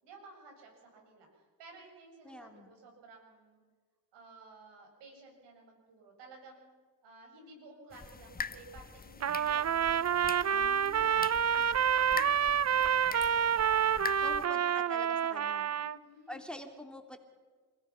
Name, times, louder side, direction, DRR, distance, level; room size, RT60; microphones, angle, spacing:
voice 1, 0.0-3.6 4.1-6.7 7.0-13.7 14.2-15.2 15.8-16.4, right 3 dB, 85° right, 2 dB, 7.2 m, -55 dB
voice 2, 2.2-2.7 10.5-11.2 11.6-11.8 14.2-15.7 16.3-17.2, equal, ahead, 4 dB, 3.0 m, -46 dB
sound 1, 7.9-14.5, left 4 dB, 20° left, 1.2 m, -43 dB
Trumpet, 9.2-16.0, right 8 dB, 40° right, 0.7 m, -28 dB
27.5 x 16.5 x 5.8 m, 1.4 s
supercardioid pair, 65°, 41 cm